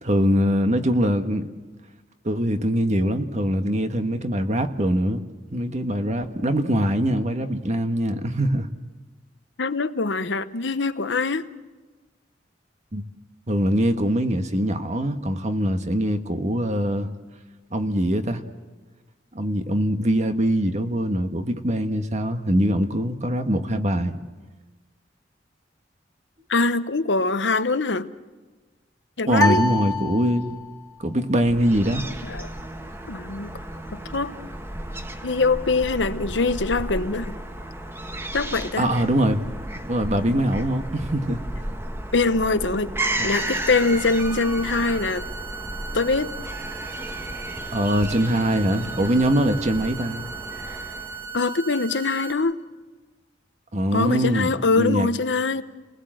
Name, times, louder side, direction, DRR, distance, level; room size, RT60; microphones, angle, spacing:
voice 1, 0.0-1.5 2.2-5.2 5.5-8.7 12.9-13.0 13.5-17.1 17.7-18.4 19.3-24.2 29.3-30.6 31.0-32.0 38.8-39.4 39.9-41.4 43.2-43.3 47.7-50.2 53.7-55.1, equal, 40° right, 7 dB, 1.5 m, -23 dB
voice 2, 9.6-11.5 26.5-28.1 29.2-29.6 32.2-32.5 33.1-33.6 33.9-34.3 35.2-37.4 38.3-38.9 42.1-42.9 43.2-45.2 45.9-46.3 51.3-52.6 53.9-55.6, left 3 dB, 75° left, 12 dB, 1.0 m, -23 dB
sound 1, 29.4-30.8, left 1 dB, 20° left, 1.5 m, -25 dB
Fowl / Gull seagull, 31.5-51.3, right 1 dB, 15° right, 1.4 m, -34 dB
sound 2, 43.3-52.3, right 5 dB, 70° right, 4.3 m, -37 dB
29.5 x 20.0 x 7.7 m, 1.3 s
head